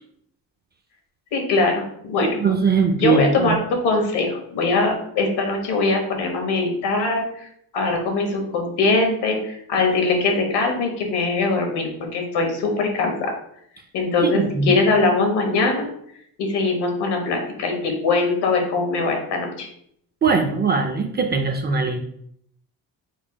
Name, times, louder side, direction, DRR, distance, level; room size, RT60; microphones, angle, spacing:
voice 1, 1.3-2.4 3.0-7.5 7.7-13.3 13.9-15.9 16.4-19.7, left 3 dB, 80° left, 2 dB, 1.3 m, -22 dB
voice 2, 2.2-3.6 14.2-14.8 20.2-22.0, right 5 dB, 25° right, 5 dB, 0.4 m, -21 dB
4.5 x 2.3 x 4.2 m, 0.69 s
cardioid pair, 130°, 40 cm